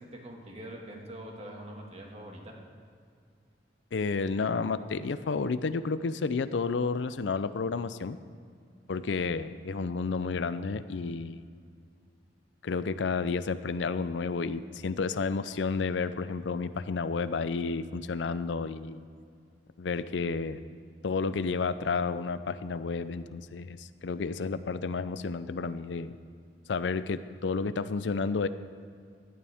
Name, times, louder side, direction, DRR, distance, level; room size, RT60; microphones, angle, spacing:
voice 1, 0.0-2.6, right 1 dB, 35° right, 0 dB, 1.8 m, -44 dB
voice 2, 3.9-8.2 8.9-11.4 12.6-19.0 19.8-20.6 21.0-26.1 26.7-28.5, left 4 dB, 85° left, 13 dB, 0.5 m, -31 dB
16.5 x 11.0 x 3.5 m, 2.2 s
head